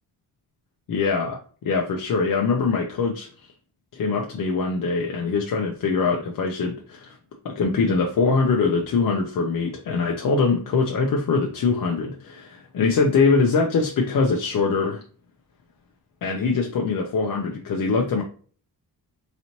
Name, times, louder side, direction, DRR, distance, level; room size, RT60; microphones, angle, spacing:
voice 1, 0.9-1.4 1.6-3.3 3.9-7.2 7.4-15.0 16.2-18.2, left 4 dB, 55° left, 1 dB, 0.6 m, -23 dB
4.0 x 3.0 x 2.8 m, 0.43 s
wide cardioid pair, 120°, 38 cm